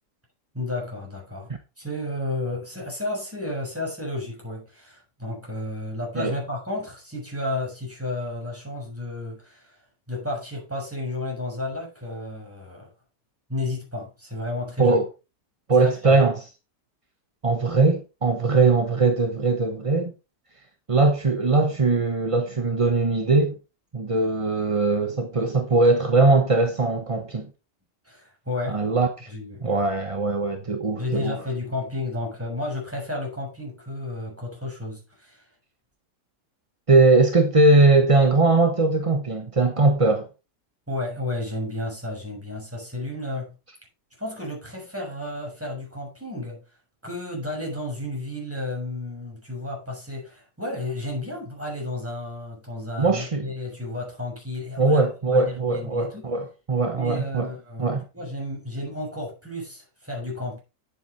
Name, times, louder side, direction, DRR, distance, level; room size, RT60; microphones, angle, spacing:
voice 1, 0.5-1.5 1.8-9.8 10.1-12.9 13.5-15.0 15.7-16.2 28.0-28.9 29.3-29.9 31.0-35.5 40.9-43.5 44.2-46.6 47.0-56.2 56.9-60.6, left 2 dB, 10° right, 6.9 m, -32 dB
voice 2, 15.7-16.4 17.4-20.1 20.9-23.6 23.9-27.5 28.7-29.3 29.6-31.4 36.9-40.3 53.0-53.5 54.8-57.5 57.8-58.0, right 3 dB, 25° right, 0.7 m, -20 dB
10.5 x 8.4 x 4.1 m
omnidirectional pair, 1.8 m